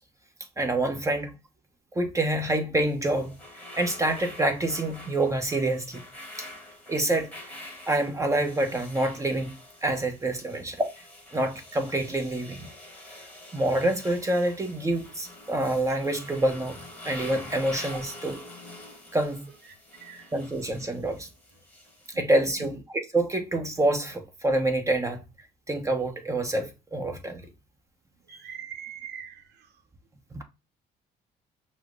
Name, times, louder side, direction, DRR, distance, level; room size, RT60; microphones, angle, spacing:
voice 1, 0.6-1.3 1.9-3.4 3.7-6.0 6.4-6.5 6.9-7.3 7.9-9.5 9.8-10.9 11.3-12.7 13.5-16.8 17.0-18.4 19.1-19.5 20.3-21.3 22.1-22.8 23.1-25.2 25.7-27.5 28.3-28.4 30.3-30.4, right 1 dB, 20° right, 0.9 m, -27 dB
sound 1, 2.9-22.1, left 1 dB, 10° left, 1.6 m, -46 dB
voice 2, 20.0-20.3 22.1-22.2 22.6-22.7 28.3-29.7, right 8 dB, 80° right, 0.8 m, -42 dB
6.2 x 2.1 x 3.7 m
cardioid pair, 110°, 17 cm